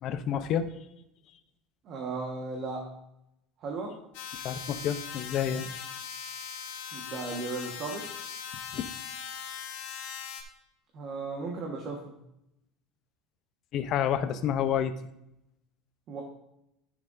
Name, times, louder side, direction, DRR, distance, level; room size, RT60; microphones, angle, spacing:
voice 1, 0.0-0.7 4.3-5.7 8.7-8.9 13.7-15.0, left 9 dB, 40° left, 11 dB, 0.6 m, -29 dB
voice 2, 1.8-2.9 3.6-3.9 6.9-8.1 10.9-12.1 16.1-16.2, right 3 dB, 35° right, 0 dB, 1.3 m, -36 dB
sound 1, 4.1-10.4, left 7 dB, 70° left, 1.7 m, -40 dB
13.0 x 6.8 x 2.6 m, 0.84 s
cardioid pair, 165°, 0 cm